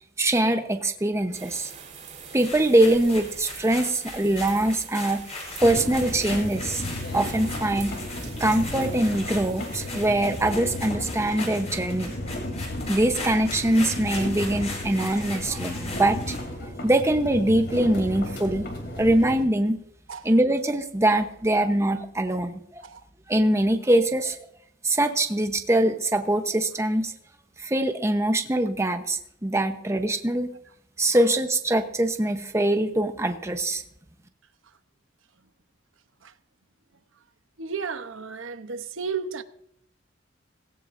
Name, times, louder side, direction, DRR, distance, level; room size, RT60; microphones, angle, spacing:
voice 1, 0.2-1.7 2.3-5.2 5.6-6.8 7.1-8.0 8.4-12.1 12.9-16.3 16.8-18.7 19.0-19.8 20.2-22.8 23.3-24.4 24.8-27.1 27.6-30.5 31.0-33.8, right 1 dB, 15° right, 0.9 m, -23 dB
sound 1, 1.3-10.5, right 6 dB, 40° right, 3.4 m, -45 dB
sound 2, 2.3-16.5, left 3 dB, 35° left, 7.0 m, -39 dB
sound 3, 5.6-19.5, left 1 dB, 60° left, 3.2 m, -34 dB
voice 2, 37.6-39.4, right 5 dB, 85° right, 0.9 m, -33 dB
18.0 x 17.0 x 2.6 m
head